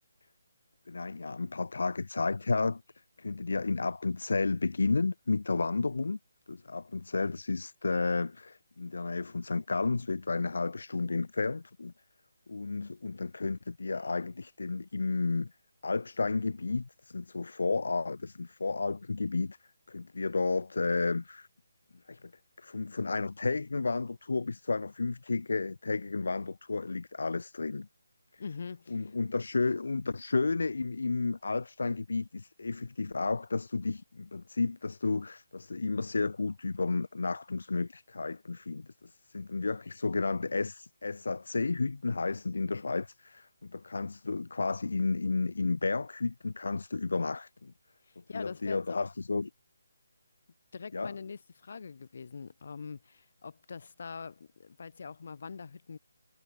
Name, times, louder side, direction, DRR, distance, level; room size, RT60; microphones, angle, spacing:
voice 1, 0.9-2.8 3.2-6.2 6.5-11.9 12.5-15.5 15.8-19.6 19.9-21.5 22.1-22.2 22.6-27.9 28.9-47.7 48.3-49.5 50.9-51.1, left 3 dB, 75° left, 0.6 m, -32 dB
voice 2, 28.4-29.0 48.0-49.1 50.7-56.0, left 5 dB, 55° left, 4.0 m, -43 dB
figure-of-eight pair, 160°, 0 cm